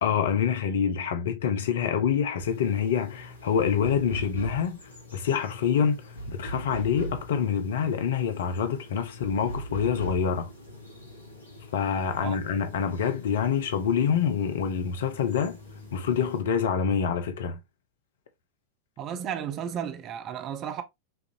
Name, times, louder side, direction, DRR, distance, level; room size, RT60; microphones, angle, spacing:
voice 1, 0.0-4.8 5.1-10.5 11.7-15.6 15.9-17.6, left 7 dB, 60° left, 0.6 m, -26 dB
sound 1, 2.4-16.4, right 1 dB, 80° left, 1.0 m, -41 dB
voice 2, 19.0-20.8, right 8 dB, 35° right, 0.6 m, -33 dB
5.7 x 2.6 x 2.6 m
figure-of-eight pair, 90°, 0 cm